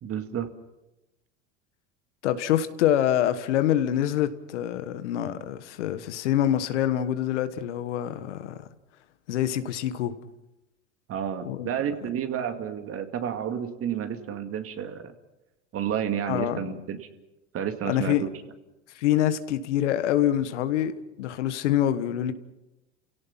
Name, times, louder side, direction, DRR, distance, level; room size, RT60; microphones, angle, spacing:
voice 1, 0.0-0.5 11.1-15.1 15.7-17.1 17.5-18.3, right 9 dB, 40° right, 2.2 m, -31 dB
voice 2, 2.2-8.6 9.3-10.1 11.4-11.7 16.3-16.6 17.9-18.3 18.9-20.9 21.2-22.3, left 11 dB, 80° left, 1.5 m, -25 dB
30.0 x 17.0 x 5.9 m
hypercardioid pair, 95°, 35 cm